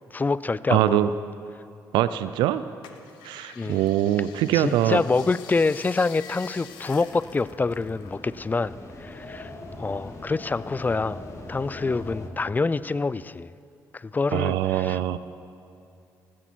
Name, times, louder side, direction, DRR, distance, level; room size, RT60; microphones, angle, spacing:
voice 1, 0.1-1.1 3.6-3.8 4.5-8.7 9.0-9.5 9.8-11.2 11.5-13.5 13.9-15.2, left 3 dB, 20° left, 18 dB, 0.4 m, -26 dB
voice 2, 0.7-1.1 1.9-2.6 3.2-5.0 14.3-15.2, right 13 dB, 80° right, 13 dB, 0.4 m, -23 dB
sound 1, 2.8-8.7 8.9-10.2 10.7-11.5 12.0-12.1, left 9 dB, 80° left, 0.8 m, -47 dB
sound 2, 6.7-12.3, left 2 dB, 40° left, 2.2 m, -41 dB
16.0 x 13.5 x 4.5 m, 2.6 s
supercardioid pair, 55°, 8 cm